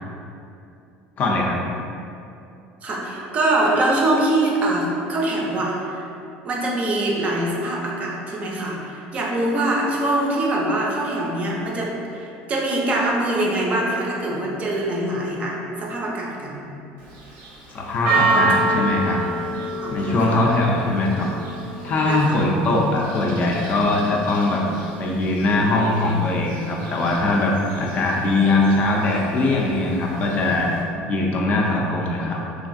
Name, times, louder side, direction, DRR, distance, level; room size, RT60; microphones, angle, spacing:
voice 1, 1.2-1.6 17.7-19.2 19.9-21.3 21.8-24.6 25.0-30.7 31.1-32.4, left 2 dB, 40° left, -1 dB, 0.4 m, -21 dB
voice 2, 2.8-6.1 6.4-16.6 18.3-18.8 19.7-20.4 22.1-22.4, right 1 dB, 35° right, -2 dB, 0.4 m, -24 dB
Church bell, 17.0-30.8, right 2 dB, 80° right, 0.7 m, -29 dB
3.1 x 2.4 x 2.5 m, 2.6 s
cardioid pair, 135°, 4 cm